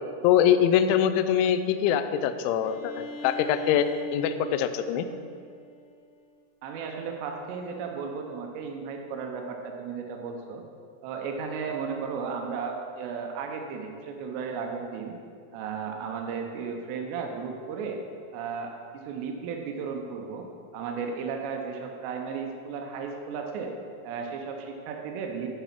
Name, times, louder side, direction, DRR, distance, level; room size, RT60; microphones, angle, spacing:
voice 1, 0.2-5.1, left 9 dB, 85° left, 10 dB, 2.7 m, -23 dB
Bowed string instrument, 2.6-6.4, right 1 dB, 70° left, 2.6 m, -42 dB
voice 2, 6.6-10.6 11.0-15.2 15.5-18.0 18.3-20.5 20.7-23.7 24.0-25.6, right 5 dB, 85° right, 3 dB, 2.5 m, -34 dB
10.5 x 5.1 x 5.8 m, 2.3 s
omnidirectional pair, 6.0 m